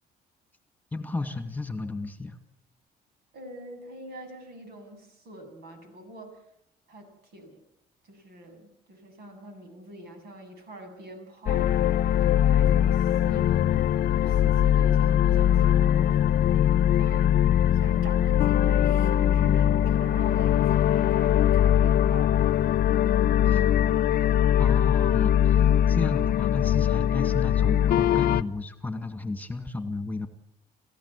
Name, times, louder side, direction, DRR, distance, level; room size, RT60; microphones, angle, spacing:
voice 1, 0.9-2.4 23.4-23.6 24.6-30.3, left 3 dB, 10° left, 8 dB, 2.2 m, -33 dB
voice 2, 3.3-6.4 6.9-7.6 8.0-11.7 12.2-13.7 14.1-16.4 17.0-22.5, right 1 dB, 70° right, 6 dB, 7.9 m, -44 dB
sound 1, 11.5-28.4, left 10 dB, 60° left, 0.9 m, -21 dB
28.5 x 15.5 x 8.5 m, 0.73 s
cardioid pair, 110°, 17 cm